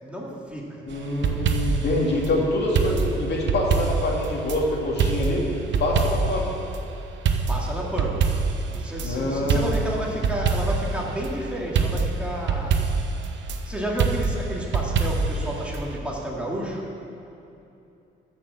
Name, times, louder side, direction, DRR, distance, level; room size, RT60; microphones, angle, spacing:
voice 1, 0.0-0.8 7.5-8.3 8.7-12.8 13.6-16.9, right 1 dB, 5° right, -3 dB, 2.2 m, -31 dB
voice 2, 0.9-5.5 5.8-6.5 9.0-9.7, left 1 dB, 60° left, -2 dB, 2.5 m, -25 dB
sound 1, 0.9-1.9 2.7-4.6 5.0-6.4 6.7-6.8 7.2-9.1 9.5-10.9 11.2-11.3 11.7-13.6 14.0-15.4 15.7-15.8, right 5 dB, 70° right, 1.1 m, -24 dB
13.5 x 6.0 x 7.5 m, 2.8 s
cardioid pair, 90°, 20 cm